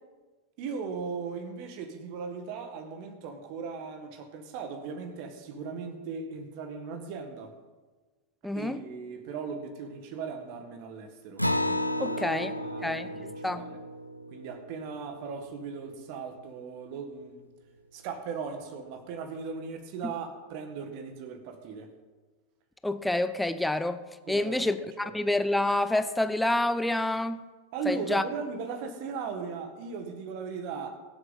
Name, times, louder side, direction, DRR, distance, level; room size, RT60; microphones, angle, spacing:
voice 1, 0.6-7.5 8.5-11.4 12.0-13.8 14.3-17.4 17.9-21.9 24.3-24.8 25.0-25.2 27.7-31.0, right 5 dB, 45° right, 1.8 m, -38 dB
voice 2, 8.4-8.8 12.0-12.5 12.8-13.1 13.4-13.7 20.0-20.1 22.8-24.0 24.3-27.4 27.9-28.2, left 1 dB, 5° left, 0.7 m, -28 dB
Acoustic guitar, 11.4-16.3, left 1 dB, 90° left, 0.7 m, -33 dB
23.0 x 7.9 x 4.1 m
figure-of-eight pair, 90°, 0 cm